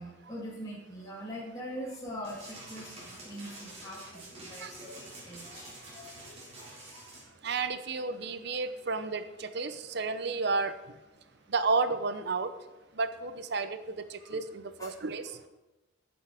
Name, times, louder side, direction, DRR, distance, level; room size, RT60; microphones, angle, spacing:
voice 1, 0.0-7.5 10.0-10.4 11.2-11.4 14.2-14.4 14.8-14.9, equal, 15° left, -5 dB, 2.3 m, -44 dB
sound 1, 2.2-7.2, right 2 dB, 30° right, 3.8 m, -48 dB
voice 2, 7.4-10.8 11.5-12.5 13.0-15.4, right 4 dB, 55° right, 12 dB, 0.7 m, -32 dB
14.0 x 8.0 x 4.9 m, 1.1 s
head